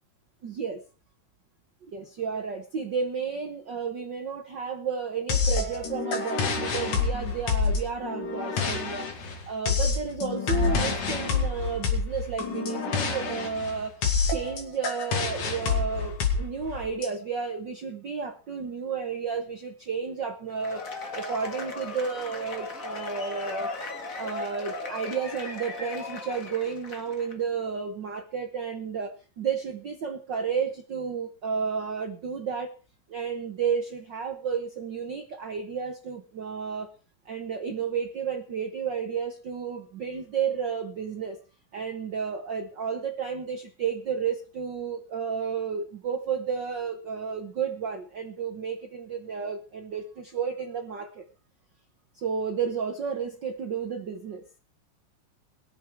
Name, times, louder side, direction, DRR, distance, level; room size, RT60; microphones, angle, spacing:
voice 1, 0.4-0.8 1.8-9.1 9.5-20.8 21.1-23.7 24.2-32.7 33.1-36.9 37.2-41.4 41.7-51.2 52.1-54.4, right 6 dB, 85° right, 5 dB, 0.9 m, -32 dB
sound 1, 5.3-17.1, left 5 dB, 70° left, 3.8 m, -27 dB
Cheering / Applause / Crowd, 20.5-27.3, left 3 dB, 35° left, 1.4 m, -37 dB
22.0 x 7.5 x 4.6 m, 0.36 s
omnidirectional pair, 3.8 m